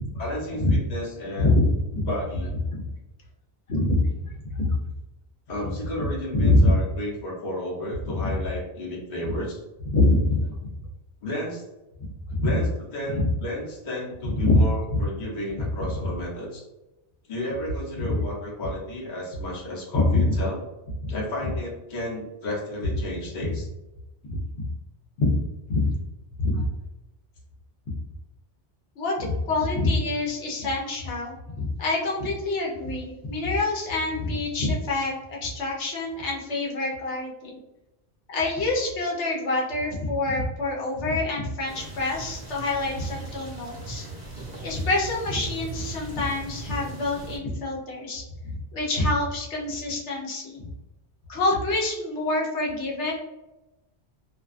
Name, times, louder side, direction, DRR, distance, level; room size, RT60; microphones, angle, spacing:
voice 1, 0.2-1.6 2.0-2.5 5.5-9.6 11.2-11.6 12.4-12.7 12.9-16.6 17.3-20.6 21.1-23.7, left 1 dB, 45° left, -4 dB, 0.9 m, -32 dB
voice 2, 3.7-4.7 6.3-6.7 8.1-8.3 9.9-10.4 12.0-12.5 13.2-13.3 14.4-15.0 18.0-18.1 19.9-20.3 21.0-21.1 24.2-24.4 25.2-25.3 25.7-25.9 26.4-26.6 29.0-37.5 38.3-44.0 44.6-50.6 51.3-53.1, left 2 dB, 90° left, -2 dB, 1.0 m, -25 dB
sound 1, 41.7-47.4, right 2 dB, 50° right, 0.8 m, -38 dB
2.5 x 2.2 x 2.4 m, 0.97 s
omnidirectional pair, 1.1 m